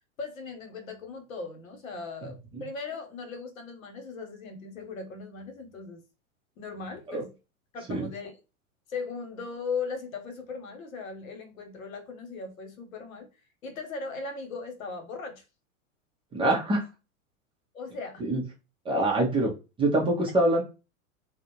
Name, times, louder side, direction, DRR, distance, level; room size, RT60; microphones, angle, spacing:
voice 1, 0.2-6.0 6.6-7.3 7.7-8.4 8.9-13.3 13.6-15.4 17.7-18.3, left 4 dB, 70° left, 1.0 m, -38 dB
voice 2, 16.3-16.8 18.2-18.4 18.8-19.5 19.8-20.6, right 1 dB, 15° right, 0.5 m, -24 dB
2.4 x 2.0 x 2.9 m
hypercardioid pair, 100°, 42 cm